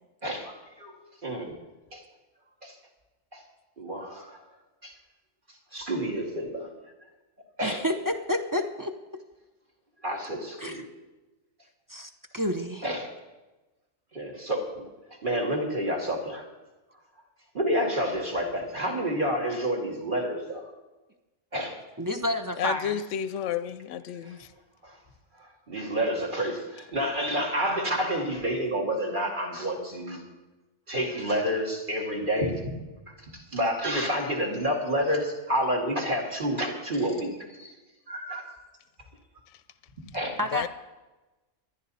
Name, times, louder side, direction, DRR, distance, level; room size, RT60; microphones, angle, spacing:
voice 1, 0.2-0.9 1.2-1.5 1.9-2.0 2.6-2.7 3.3-3.4 3.8-4.4 4.8-4.9 5.7-6.7 7.6-7.8 10.0-10.8 12.8-13.1 14.1-14.8 15.2-16.4 17.5-20.7 21.5-21.8 24.2-24.3 24.8-24.9 25.7-30.2 30.9-32.7 33.5-37.3 38.1-38.5 40.1-40.4, equal, 40° right, 2.5 m, -29 dB
voice 2, 7.6-8.9 10.6-10.8 11.9-12.9 22.0-23.0 40.4-40.7, left 1 dB, 20° right, 0.6 m, -29 dB
voice 3, 22.6-24.5 40.5-40.7, left 9 dB, 70° left, 0.9 m, -31 dB
25.5 x 10.5 x 4.1 m
omnidirectional pair, 1.3 m